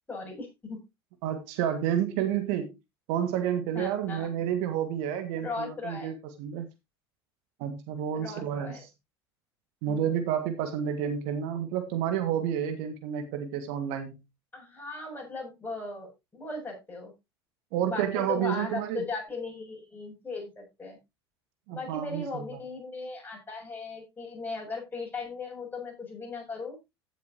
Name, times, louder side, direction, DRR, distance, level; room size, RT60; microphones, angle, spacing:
voice 1, 0.1-0.8 3.7-4.3 5.4-6.1 8.1-8.8 9.9-10.3 14.5-17.1 17.8-21.0 21.7-26.8, left 3 dB, 15° left, -1 dB, 7.4 m, -38 dB
voice 2, 1.2-2.7 3.1-6.7 7.6-8.9 9.8-14.2 17.7-19.0 21.7-22.6, right 9 dB, 55° right, 8 dB, 1.7 m, -30 dB
15.5 x 7.1 x 2.9 m, 0.23 s
figure-of-eight pair, 70°, 14 cm